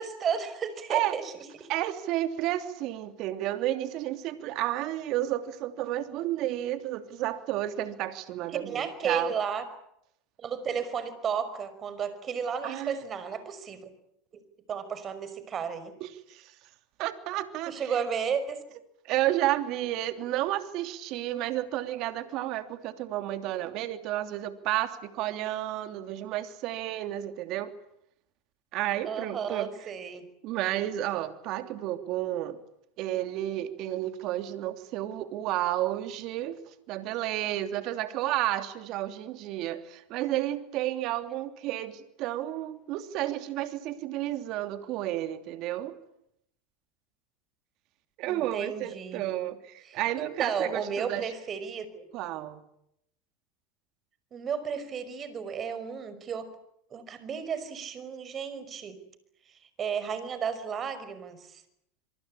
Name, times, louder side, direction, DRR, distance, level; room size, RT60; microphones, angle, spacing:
voice 1, 0.0-1.3 1.6-1.7 8.5-9.6 10.4-13.9 14.7-15.9 17.7-18.6 29.0-30.3 48.3-49.2 49.8-50.0 50.4-52.1 54.3-56.5 56.9-59.0 59.5-61.6, right 6 dB, 35° right, 13 dB, 5.6 m, -33 dB
voice 2, 1.7-9.3 12.6-13.0 16.0-16.5 17.0-18.0 19.0-27.7 28.7-29.7 30.4-32.6 33.0-46.0 48.2-51.3 52.1-52.6, right 14 dB, 55° right, 9 dB, 3.0 m, -31 dB
26.0 x 24.5 x 8.7 m, 0.76 s
hypercardioid pair, 100°, 0 cm